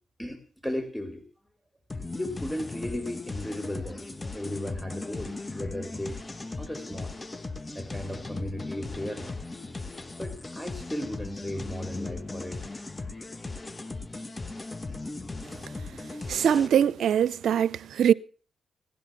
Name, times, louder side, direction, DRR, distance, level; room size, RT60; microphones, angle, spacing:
voice 1, 0.2-1.2 2.1-6.2 6.6-7.1 7.7-9.5 10.2-12.6, left 1 dB, 5° left, 2.7 m, -36 dB
sound 1, 1.9-16.7, left 3 dB, 30° left, 1.3 m, -38 dB
voice 2, 16.3-18.1, right 9 dB, 75° right, 0.6 m, -22 dB
17.5 x 11.0 x 5.9 m
supercardioid pair, 60°, 0 cm